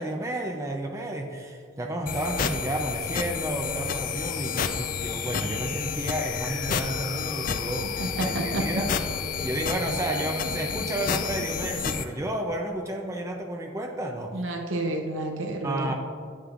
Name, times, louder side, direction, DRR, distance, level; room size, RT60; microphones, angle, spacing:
voice 1, 0.0-8.9 9.4-14.4 15.6-15.9, right 1 dB, 15° right, 3 dB, 0.4 m, -31 dB
sound 1, 2.1-12.1, left 6 dB, 45° left, 0.4 m, -30 dB
voice 2, 8.0-8.7 14.3-15.9, right 2 dB, 90° right, 3 dB, 0.7 m, -30 dB
10.0 x 7.8 x 2.5 m, 2.3 s
head